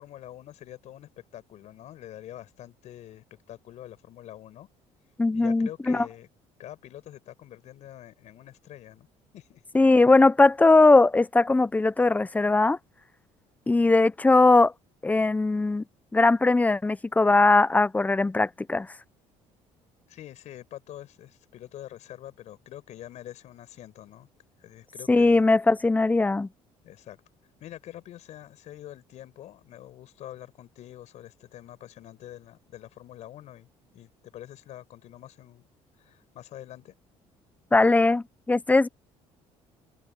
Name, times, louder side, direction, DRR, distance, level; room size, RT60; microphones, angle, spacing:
voice 1, 0.0-4.7 5.3-6.3 6.6-9.1 9.3-9.6 20.1-24.3 24.6-25.4 26.8-27.2 27.6-33.7 33.9-35.7 36.0-36.9, left 12 dB, 65° left, 6.5 m, -45 dB
voice 2, 5.2-6.1 9.7-12.8 13.7-14.7 15.0-15.8 16.1-18.9 25.1-26.5 37.7-38.9, left 3 dB, 10° left, 0.9 m, -20 dB
cardioid pair, 105°, 13 cm